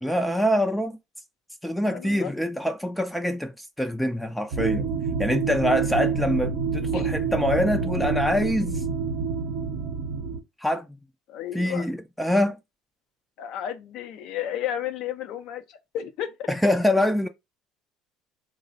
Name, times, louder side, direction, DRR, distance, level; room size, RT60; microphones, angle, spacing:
voice 1, 0.0-1.0 1.6-4.9 5.2-8.8 10.6-10.9 11.5-12.6 16.5-17.3, left 1 dB, 5° left, 0.4 m, -25 dB
voice 2, 1.9-2.3 6.9-7.1 11.3-11.9 13.4-16.5, left 10 dB, 70° left, 0.5 m, -33 dB
sound 1, 4.5-10.4, right 5 dB, 80° right, 0.5 m, -27 dB
3.1 x 2.0 x 3.9 m
supercardioid pair, 95°, 0 cm